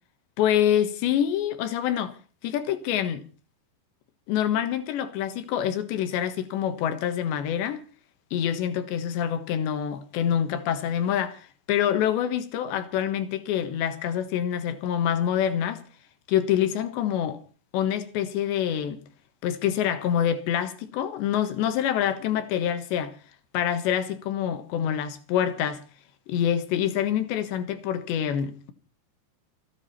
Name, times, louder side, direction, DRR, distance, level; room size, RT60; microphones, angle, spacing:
voice 1, 0.4-2.1 2.4-3.3 4.3-7.8 8.3-15.8 16.3-17.4 17.7-19.0 19.4-23.2 23.5-25.8 26.3-28.7, left 9 dB, 80° left, 3.7 m, -26 dB
28.0 x 9.8 x 4.3 m
omnidirectional pair, 5.0 m